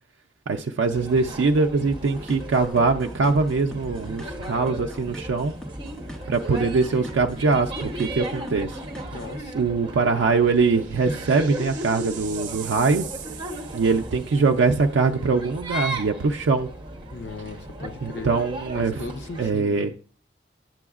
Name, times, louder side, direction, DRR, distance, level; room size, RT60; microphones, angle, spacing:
voice 1, 0.5-5.5 6.3-8.8 9.5-13.1 13.7-16.7 18.0-19.0 19.4-19.9, right 4 dB, 85° right, 0.4 m, -22 dB
sound 1, 0.9-19.5, right 1 dB, 25° right, 0.9 m, -36 dB
sound 2, 1.8-9.4, equal, 5° left, 0.8 m, -39 dB
voice 2, 9.1-9.6 17.1-18.3 18.7-19.9, left 3 dB, 65° left, 0.7 m, -37 dB
sound 3, 9.9-14.5, right 9 dB, 45° right, 0.7 m, -41 dB
9.0 x 6.9 x 2.4 m
head